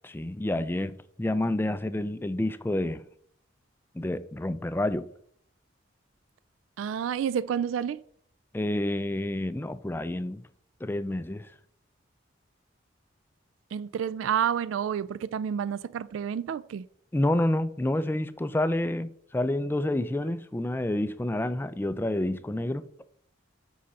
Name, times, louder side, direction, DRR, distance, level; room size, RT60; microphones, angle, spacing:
voice 1, 0.0-3.0 3.9-5.1 8.5-10.4 10.8-11.5 17.1-22.9, left 1 dB, 10° left, 0.3 m, -29 dB
voice 2, 6.8-8.0 13.7-16.9, right 8 dB, 90° right, 0.3 m, -29 dB
7.5 x 5.7 x 4.2 m
head